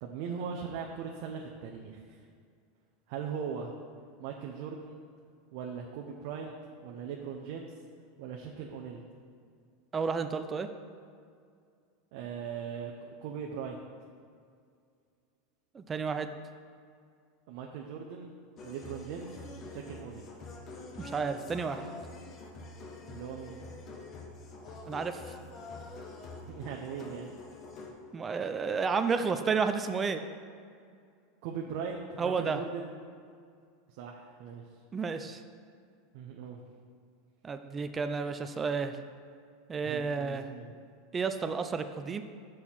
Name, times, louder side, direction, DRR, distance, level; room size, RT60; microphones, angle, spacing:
voice 1, 0.0-2.2 3.1-3.7 4.2-5.0 5.5-6.5 6.8-7.7 8.2-9.0 12.1-13.8 17.5-18.3 18.6-19.3 19.7-20.3 23.1-23.6 26.5-27.3 31.4-32.9 34.0-34.6 36.1-36.6 39.8-40.7, right 6 dB, 65° right, 0 dB, 0.7 m, -39 dB
voice 2, 9.9-10.7 15.7-16.3 21.0-21.9 24.9-25.3 28.1-30.2 32.2-32.6 34.9-35.4 37.4-39.0 39.7-40.5 41.1-42.2, right 5 dB, 20° right, 9 dB, 0.4 m, -31 dB
sound 1, 18.6-27.9, left 3 dB, 40° left, 1.1 m, -46 dB
6.4 x 4.5 x 5.7 m, 2.3 s
supercardioid pair, 120°, 0 cm